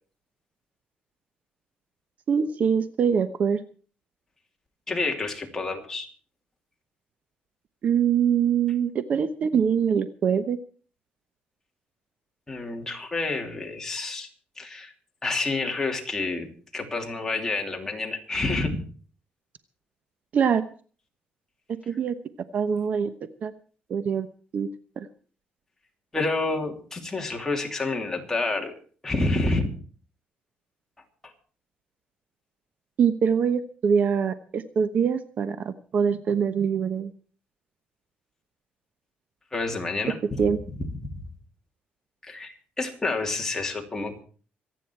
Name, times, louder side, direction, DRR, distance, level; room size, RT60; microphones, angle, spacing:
voice 1, 2.3-3.6 7.8-10.6 20.3-20.6 21.9-22.1 22.5-23.1 23.4-23.5 23.9-24.3 24.5-24.7 25.0-25.1 33.0-37.1 40.4-40.6, right 7 dB, 45° right, 12 dB, 1.0 m, -23 dB
voice 2, 4.9-6.1 12.5-14.3 14.6-14.9 15.2-18.8 26.1-28.7 29.0-29.7 31.2-31.3 39.5-40.4 41.1-41.2 42.2-44.2, left 3 dB, 15° left, 2 dB, 3.0 m, -29 dB
25.5 x 9.3 x 4.6 m, 0.41 s
cardioid pair, 140°, 4 cm